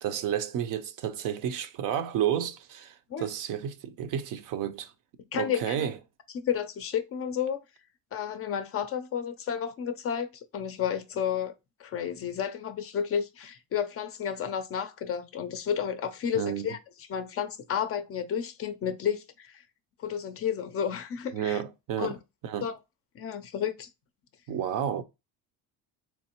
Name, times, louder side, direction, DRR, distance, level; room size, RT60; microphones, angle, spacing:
voice 1, 0.0-4.9 5.4-6.0 16.3-16.7 21.3-22.2 22.4-22.7 24.5-25.0, right 9 dB, 55° right, 0.5 m, -31 dB
voice 2, 5.3-5.9 6.3-7.6 8.1-11.5 11.8-16.8 17.1-19.6 20.0-21.6 22.0-22.2 22.6-22.8 23.1-23.9, left 8 dB, 40° left, 0.4 m, -31 dB
3.4 x 3.1 x 2.9 m
cardioid pair, 145°, 38 cm